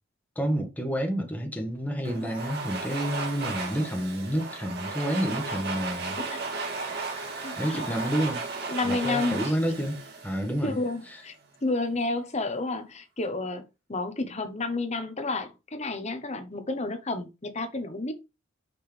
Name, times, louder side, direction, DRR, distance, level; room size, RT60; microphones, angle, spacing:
voice 1, 0.3-6.2 7.6-8.4 8.8-10.8 11.1-11.2, equal, 10° left, 1.4 m, -29 dB
Domestic sounds home sounds, 2.0-11.0, right 3 dB, 55° right, 2.9 m, -35 dB
voice 2, 7.4-7.8 8.7-9.5 10.6-11.3 11.6-13.6 13.9-18.1, left 2 dB, 35° left, 1.1 m, -30 dB
6.0 x 5.3 x 3.4 m
head